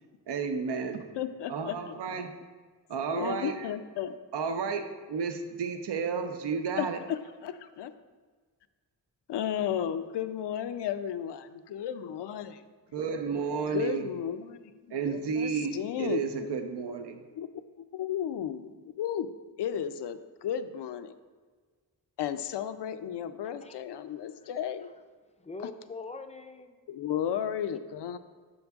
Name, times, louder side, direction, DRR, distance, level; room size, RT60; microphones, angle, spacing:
voice 1, 0.3-1.0 1.5-2.3 2.9-3.7 4.3-7.0 12.9-14.1 14.9-17.2, right 5 dB, 75° right, 7 dB, 0.7 m, -32 dB
voice 2, 1.1-1.9 3.1-4.1 6.8-7.9 9.3-12.6 13.7-16.2 17.3-17.5 17.8-18.6 19.0-19.3 19.6-21.1 22.2-24.9 26.9-28.2, left 9 dB, 75° left, 11 dB, 0.5 m, -34 dB
voice 3, 23.4-23.8 24.1-24.5 24.8-24.9 25.4-26.8, left 3 dB, 15° left, 7 dB, 0.4 m, -44 dB
7.1 x 5.3 x 3.5 m, 1.5 s
cardioid pair, 80°, 42 cm